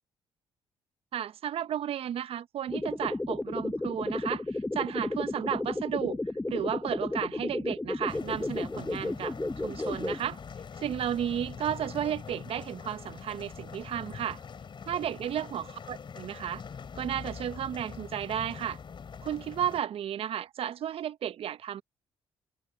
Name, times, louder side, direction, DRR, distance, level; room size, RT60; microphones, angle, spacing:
voice 1, 1.1-6.2 6.5-9.4 9.6-10.4 10.8-14.4 14.9-16.6 16.9-18.8 19.2-21.8, right 10 dB, 60° right, 0.8 m, -33 dB
sound 1, 2.7-10.2, left 2 dB, 15° left, 1.0 m, -33 dB
sound 2, 8.1-19.8, left 6 dB, 45° left, 3.3 m, -43 dB
supercardioid pair, 55°, 11 cm